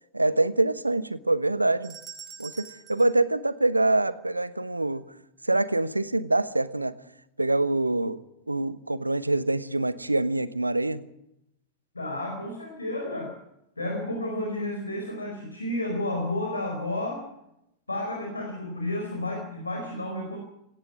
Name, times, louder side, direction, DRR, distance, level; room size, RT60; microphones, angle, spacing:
voice 1, 0.1-2.0 2.4-5.0 5.4-7.0 7.4-8.2 8.5-11.0, right 2 dB, 85° right, 16 dB, 1.0 m, -25 dB
sound 1, 1.8-4.2, right 7 dB, 25° right, 4.6 m, -46 dB
voice 2, 11.9-13.4 13.8-17.3 17.9-20.4, left 1 dB, 80° left, 2 dB, 4.8 m, -31 dB
18.0 x 16.5 x 9.8 m, 0.82 s
figure-of-eight pair, 90°, 0 cm